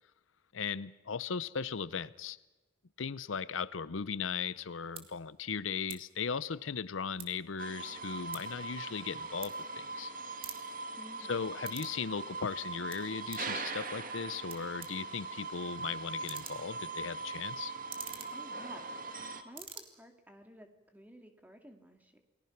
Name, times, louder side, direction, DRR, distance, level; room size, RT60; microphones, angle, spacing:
voice 1, 0.5-2.4 3.0-10.1 11.3-17.7, left 6 dB, 85° left, 18 dB, 0.7 m, -37 dB
sound 1, 4.4-4.6 4.9-5.1 5.8-6.0 6.3-7.5 7.9-10.0 10.3-12.0 12.3-13.5 14.1-14.2 14.5-19.2 19.4-19.8, right 7 dB, 30° right, 2.2 m, -48 dB
sound 2, 7.6-19.4, right 3 dB, 45° right, 1.7 m, -41 dB
voice 2, 10.9-11.5 18.3-18.9 19.4-22.2, equal, 10° right, 5 dB, 2.3 m, -53 dB
29.0 x 20.0 x 5.9 m, 1.2 s
head